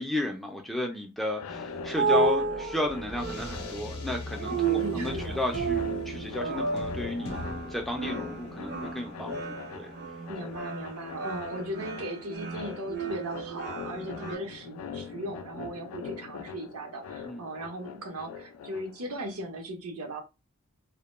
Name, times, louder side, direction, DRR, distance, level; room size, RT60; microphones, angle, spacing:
voice 1, 0.0-7.4 7.7-9.9 15.6-15.7 17.2-17.4, left 1 dB, ahead, 2 dB, 0.3 m, -33 dB
sound 1, 1.3-19.2, left 7 dB, 85° left, 0.3 m, -43 dB
sound 2, 1.5-14.4, right 4 dB, 45° right, 0.5 m, -32 dB
sound 3, 2.3-12.7, left 2 dB, 45° left, 0.6 m, -43 dB
voice 2, 4.8-5.4 10.3-20.2, right 1 dB, 80° right, 3 dB, 0.8 m, -37 dB
2.1 x 2.1 x 3.0 m, 0.27 s
head